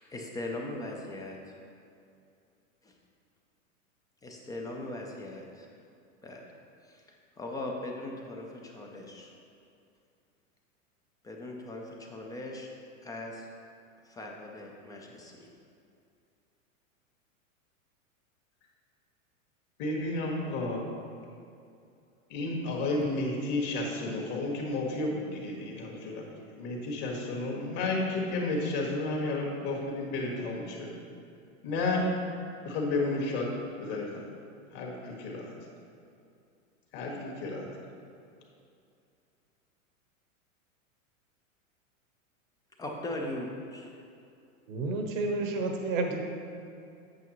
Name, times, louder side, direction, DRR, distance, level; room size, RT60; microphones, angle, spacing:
voice 1, 0.1-1.6 2.8-2.9 4.2-5.7 6.2-6.4 6.8-7.0 7.4-9.3 11.2-12.7 13.0-13.5 14.0-15.5 42.8-43.9, left 1 dB, 10° left, 0 dB, 0.3 m, -39 dB
voice 2, 19.8-20.9 22.3-26.2 26.6-30.9 31.6-32.1 32.6-33.5 33.8-34.3 34.7-35.5 36.9-37.7, left 2 dB, 50° left, -1 dB, 1.8 m, -32 dB
voice 3, 44.7-46.2, right 3 dB, 70° right, 4 dB, 1.1 m, -30 dB
8.2 x 6.9 x 3.0 m, 2.5 s
hypercardioid pair, 120°, 41 cm